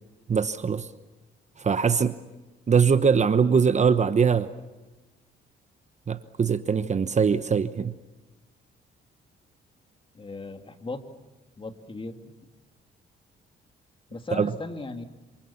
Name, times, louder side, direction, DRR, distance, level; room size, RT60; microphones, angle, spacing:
voice 1, 0.3-0.9 1.6-2.2 2.7-4.5 6.1-7.9 14.4-14.5, right 6 dB, 35° right, 12 dB, 1.0 m, -22 dB
voice 2, 10.1-11.0 11.6-12.3 14.1-15.0, left 3 dB, 25° left, 6 dB, 2.7 m, -37 dB
28.0 x 27.0 x 7.2 m, 1.1 s
cardioid pair, 90°, 20 cm